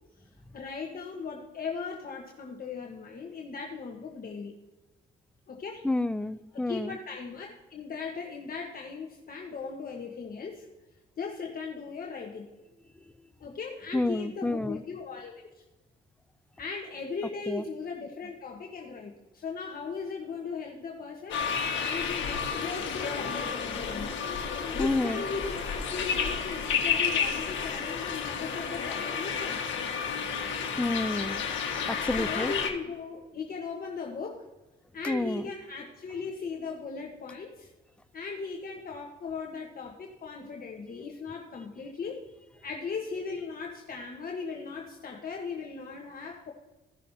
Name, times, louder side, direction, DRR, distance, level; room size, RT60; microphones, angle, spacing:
voice 1, 0.5-4.6 5.5-5.8 6.7-10.7 11.2-12.5 13.4-15.6 16.6-24.2 24.7-29.6 32.1-34.5 34.9-37.7 38.1-42.3 42.6-46.5, left 5 dB, 45° left, 0 dB, 1.3 m, -38 dB
voice 2, 5.8-7.0 13.9-14.8 17.5-17.6 24.8-25.2 30.8-31.5 31.8-32.5 35.0-35.4, left 2 dB, 5° left, 13 dB, 0.5 m, -29 dB
sound 1, 21.3-32.7, left 6 dB, 70° left, 1.6 m, -31 dB
16.5 x 6.4 x 2.8 m, 1.1 s
cardioid pair, 90°, 20 cm